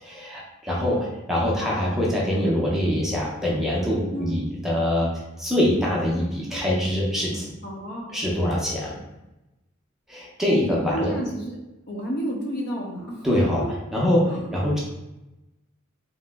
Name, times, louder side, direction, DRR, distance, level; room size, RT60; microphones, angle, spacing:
voice 1, 0.0-7.5 8.1-8.9 10.1-11.1 13.2-13.6 13.9-14.8, left 1 dB, ahead, -5 dB, 0.5 m, -24 dB
voice 2, 7.6-8.2 10.9-11.6 11.9-13.2 14.3-14.5, right 1 dB, 55° left, -1 dB, 0.6 m, -31 dB
2.8 x 2.0 x 3.4 m, 0.97 s
head